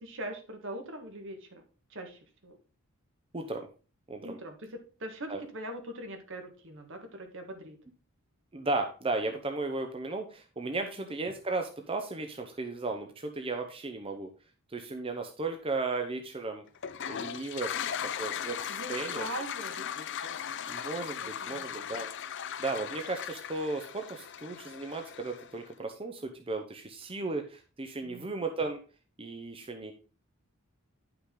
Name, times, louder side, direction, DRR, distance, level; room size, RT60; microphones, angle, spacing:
voice 1, 0.0-1.6 1.9-2.6 4.2-7.8 10.8-10.9 18.7-20.4 21.2-21.6 28.0-28.3, right 1 dB, 60° right, 5 dB, 1.7 m, -42 dB
voice 2, 3.3-3.7 4.1-4.4 5.3-5.4 8.5-14.3 14.7-16.6 17.1-17.7 18.0-19.3 20.7-22.1 22.6-28.8 29.2-29.9, right 3 dB, 25° right, 4 dB, 0.7 m, -35 dB
Toilet flush, 16.8-25.6, left 9 dB, 55° left, 0.5 m, -38 dB
9.9 x 5.8 x 3.8 m, 0.36 s
head